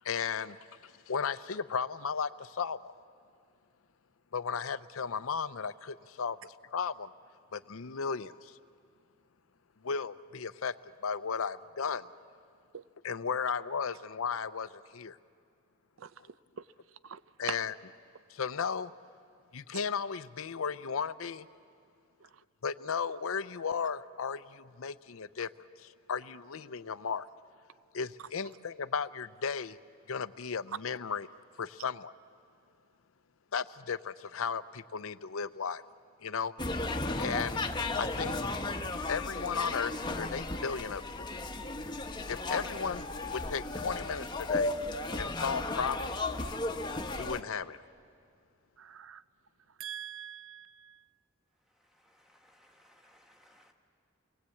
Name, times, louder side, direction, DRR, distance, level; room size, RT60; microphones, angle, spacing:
voice 1, 0.0-0.6 0.8-2.9 4.3-7.1 7.5-8.6 9.8-10.7 11.0-12.1 13.0-15.2 17.4-17.7 18.3-18.9 19.5-21.5 22.6-25.5 25.8-27.2 27.9-29.8 30.1-31.3 31.6-32.1 33.5-35.8 36.2-36.5 37.2-37.6 38.0-38.3 39.1-41.3 42.3-43.1 43.3-44.7 45.2-46.1 47.2-47.8, left 6 dB, 80° left, 14 dB, 0.6 m, -35 dB
sound 1, 36.6-47.4, left 2 dB, 20° left, 1.0 m, -35 dB
voice 2, 48.8-49.2 49.8-51.0, right 8 dB, 75° right, 15 dB, 0.5 m, -42 dB
voice 3, 51.6-53.7, equal, 5° right, 2 dB, 1.9 m, -64 dB
29.0 x 21.5 x 8.4 m, 2.3 s
head